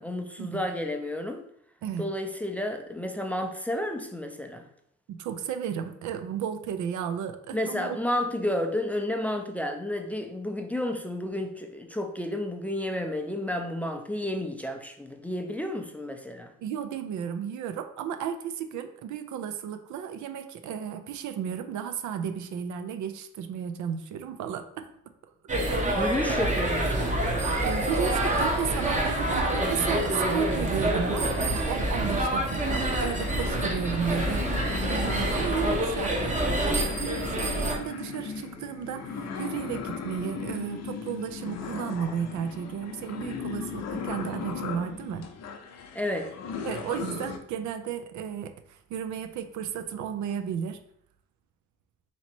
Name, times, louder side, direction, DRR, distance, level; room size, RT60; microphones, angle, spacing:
voice 1, 0.0-1.4 2.0-4.7 7.5-16.5 25.9-27.1 45.9-46.3, left 1 dB, 5° left, 4 dB, 0.4 m, -31 dB
voice 2, 5.1-8.0 16.6-24.9 25.6-26.1 27.6-45.2 46.7-50.8, right 8 dB, 75° right, 8 dB, 0.5 m, -33 dB
sound 1, 25.5-37.7, right 1 dB, 25° right, 0.8 m, -27 dB
sound 2, 32.1-47.4, left 6 dB, 60° left, 0.6 m, -37 dB
2.9 x 2.9 x 4.3 m, 0.70 s
cardioid pair, 90°, 30 cm